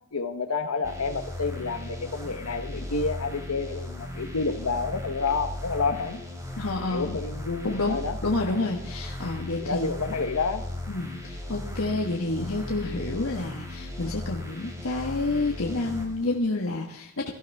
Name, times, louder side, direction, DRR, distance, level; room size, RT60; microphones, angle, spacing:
voice 1, 0.1-6.2 6.9-8.1 9.6-10.6, left 4 dB, 90° left, 8 dB, 1.0 m, -29 dB
sound 1, 0.8-16.4, left 1 dB, 15° right, 3.1 m, -37 dB
voice 2, 6.6-7.1 7.6-9.9 10.9-17.3, left 2 dB, 70° left, 0 dB, 1.5 m, -29 dB
18.0 x 13.0 x 3.5 m, 0.74 s
head